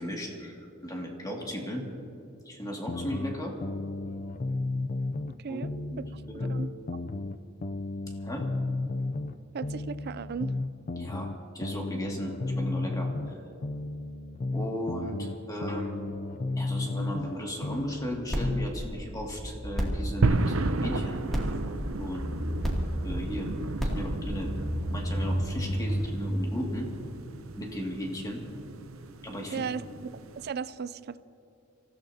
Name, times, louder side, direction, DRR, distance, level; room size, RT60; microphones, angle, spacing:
voice 1, 0.0-1.8 2.5-3.6 5.5-5.6 5.9-6.0 6.3-6.6 8.2-8.4 10.9-11.3 11.5-13.4 14.5-16.0 16.6-21.2 22.0-22.3 23.0-23.5 23.8-24.5 24.9-26.9 27.6-28.4 29.2-29.7, equal, 20° left, -1 dB, 2.2 m, -36 dB
sound 1, 2.9-5.4 5.6-9.4 9.6-13.4 13.6-17.4 17.6-18.7, left 2 dB, 40° left, 0.5 m, -33 dB
voice 2, 9.5-10.5 29.5-31.2, right 6 dB, 50° right, 15 dB, 0.4 m, -36 dB
sound 2, 18.3-26.1, equal, ahead, 2.5 m, -32 dB
sound 3, 20.2-30.5, right 3 dB, 80° right, 0.8 m, -33 dB
27.0 x 15.5 x 2.8 m, 2.8 s
head